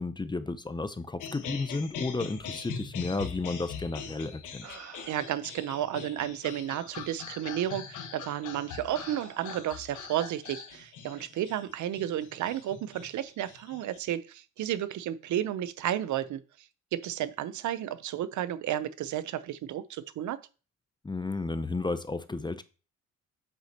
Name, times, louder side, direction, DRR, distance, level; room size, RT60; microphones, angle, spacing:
voice 1, 0.0-4.7 21.0-22.6, left 3 dB, 15° left, 0.6 m, -33 dB
sound 1, 1.2-14.0, left 6 dB, 85° left, 1.4 m, -42 dB
sound 2, 4.0-4.1 4.6-5.6 6.4-6.5 7.4-7.6 8.2-8.4 8.8-9.8 11.1-11.3, right 6 dB, 60° right, 1.7 m, -50 dB
voice 2, 5.1-16.4 16.9-20.4, right 11 dB, 75° right, 0.7 m, -32 dB
8.0 x 6.3 x 2.9 m
cardioid pair, 90°, 30 cm